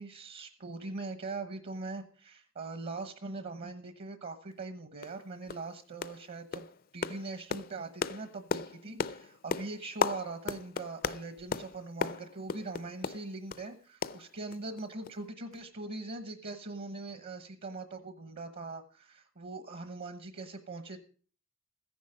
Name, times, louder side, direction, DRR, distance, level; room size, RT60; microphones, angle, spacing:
voice 1, 0.0-21.0, right 3 dB, 55° right, 10 dB, 1.1 m, -41 dB
sound 1, 4.5-4.6 5.0-5.2 5.5-5.7 6.0-6.3 6.5-13.7 14.0-14.8 15.0-15.2 15.5-15.6, left 5 dB, 45° left, 0.5 m, -36 dB
14.5 x 10.5 x 5.1 m, 0.41 s
head